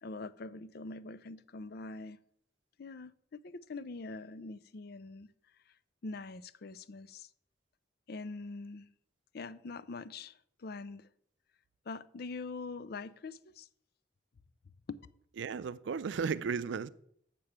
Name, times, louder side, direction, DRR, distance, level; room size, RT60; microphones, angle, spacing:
voice 1, 0.0-2.2 2.8-5.3 6.0-7.3 8.1-8.9 9.3-11.1 11.9-13.7 14.9-15.0, left 3 dB, 55° left, 0.5 m, -44 dB
voice 2, 15.4-16.9, right 6 dB, 80° right, 0.4 m, -34 dB
7.4 x 6.7 x 5.8 m
head